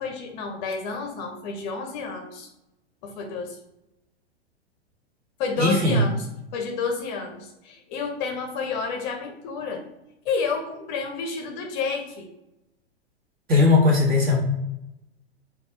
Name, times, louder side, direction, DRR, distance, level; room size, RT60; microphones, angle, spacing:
voice 1, 0.0-2.5 3.0-3.6 5.4-6.2 6.5-9.8 10.2-12.3, left 4 dB, 45° left, 3 dB, 0.7 m, -30 dB
voice 2, 5.6-6.0 13.5-14.4, left 3 dB, 25° right, -3 dB, 1.5 m, -18 dB
4.0 x 2.4 x 4.3 m, 0.91 s
hypercardioid pair, 110°, 33 cm